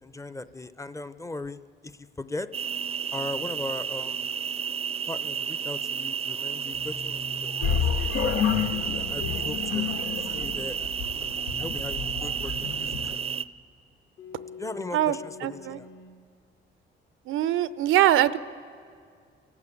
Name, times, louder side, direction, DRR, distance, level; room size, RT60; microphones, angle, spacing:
voice 1, 0.0-2.5 3.1-4.3 5.1-7.2 7.7-8.0 8.8-13.1 14.6-15.9, left 2 dB, 15° left, 13 dB, 0.6 m, -38 dB
sound 1, 2.5-13.4, right 7 dB, 30° right, 0.5 m, -32 dB
sound 2, 6.7-8.0 8.7-10.8 11.4-13.4 14.2-16.2, left 2 dB, 70° left, 2.7 m, -44 dB
sound 3, 7.6-13.1, left 8 dB, 90° left, 0.9 m, -30 dB
voice 2, 15.4-15.8 17.3-18.4, right 13 dB, 90° right, 16 dB, 0.6 m, -22 dB
29.0 x 12.0 x 8.5 m, 2.2 s
cardioid pair, 90°, 20 cm